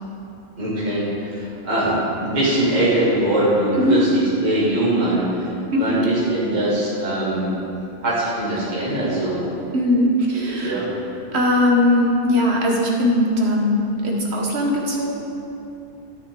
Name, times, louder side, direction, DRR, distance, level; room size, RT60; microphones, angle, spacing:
voice 1, 0.6-7.5 8.0-9.4 10.3-10.9, right 1 dB, 35° right, -10 dB, 2.3 m, -22 dB
voice 2, 9.7-10.7 11.3-15.2, left 1 dB, 60° right, -1 dB, 1.4 m, -19 dB
12.5 x 6.4 x 3.7 m, 2.8 s
omnidirectional pair, 1.3 m